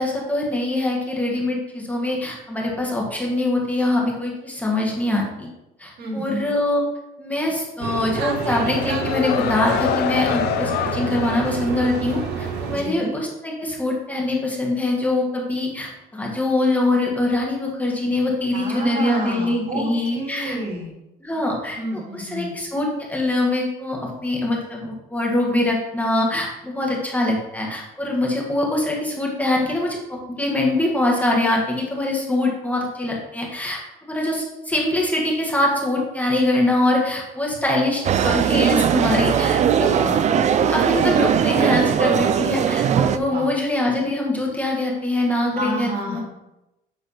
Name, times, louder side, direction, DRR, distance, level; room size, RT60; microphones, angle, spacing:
voice 1, 0.0-5.5 5.8-6.8 7.2-20.6 21.2-33.8 34.1-39.9 40.7-46.2, left 1 dB, 10° left, -2 dB, 1.7 m, -23 dB
voice 2, 6.0-6.5 12.7-13.1 18.5-20.9 21.7-22.5 39.9-40.4 43.3-43.5 45.5-46.2, right 1 dB, 65° right, -3 dB, 2.9 m, -29 dB
sound 1, 7.8-12.8, right 6 dB, 80° right, 0.9 m, -29 dB
sound 2, 8.1-12.6, left 10 dB, 75° left, 0.5 m, -27 dB
sound 3, 38.0-43.2, right 8 dB, 45° right, 0.5 m, -19 dB
8.5 x 3.3 x 5.6 m, 0.94 s
cardioid pair, 110°, 17 cm